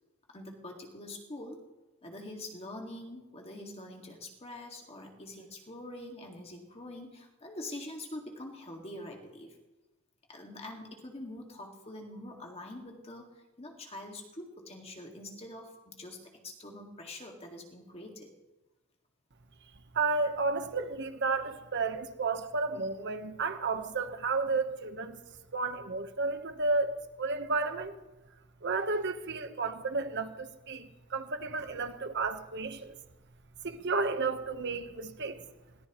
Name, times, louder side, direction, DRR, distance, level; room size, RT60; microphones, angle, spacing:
voice 1, 0.3-1.6 2.0-9.6 10.3-18.3, left 1 dB, 25° left, 2.1 m, -45 dB
voice 2, 19.9-25.2 25.5-28.0 28.6-32.9 33.6-35.4, right 3 dB, 50° right, 1.2 m, -32 dB
21.0 x 18.0 x 3.1 m
head